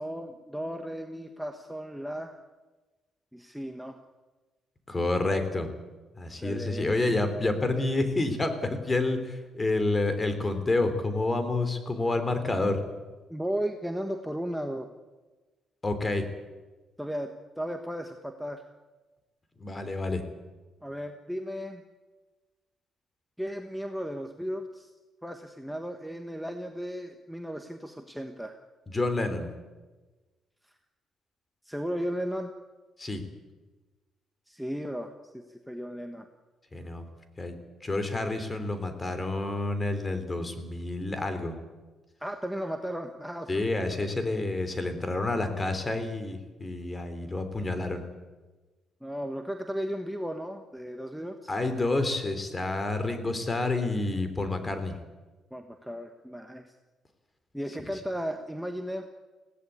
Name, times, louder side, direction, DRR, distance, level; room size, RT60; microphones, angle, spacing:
voice 1, 0.0-2.4 3.3-4.0 6.3-7.1 13.3-14.9 17.0-18.6 20.8-21.8 23.4-24.9 25.2-28.6 31.6-32.5 34.5-36.3 42.2-43.5 49.0-51.5 55.5-56.7 57.5-59.1, equal, ahead, 5 dB, 1.4 m, -35 dB
voice 2, 4.9-5.7 6.2-12.8 15.8-16.3 19.6-20.2 28.9-29.5 33.0-33.2 36.7-37.0 37.4-37.6 37.8-41.6 43.5-48.0 51.5-54.9, left 2 dB, 25° left, 9 dB, 3.4 m, -29 dB
21.0 x 17.0 x 8.4 m, 1.2 s
cardioid pair, 90°, 0 cm